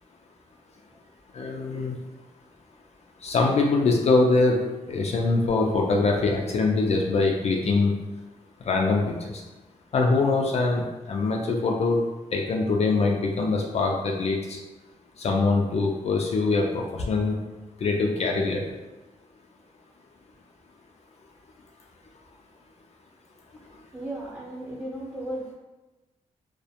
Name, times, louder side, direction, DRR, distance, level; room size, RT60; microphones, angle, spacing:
voice 1, 1.3-1.9 3.2-4.6 4.9-7.9 8.7-9.1 9.9-10.8 11.1-12.0 12.3-14.6 15.2-17.4 17.8-18.6, left 3 dB, 55° left, 0 dB, 0.4 m, -23 dB
voice 2, 23.9-25.5, right 1 dB, 10° right, -5 dB, 0.8 m, -35 dB
2.3 x 2.1 x 2.8 m, 1.1 s
cardioid pair, 75°, 13 cm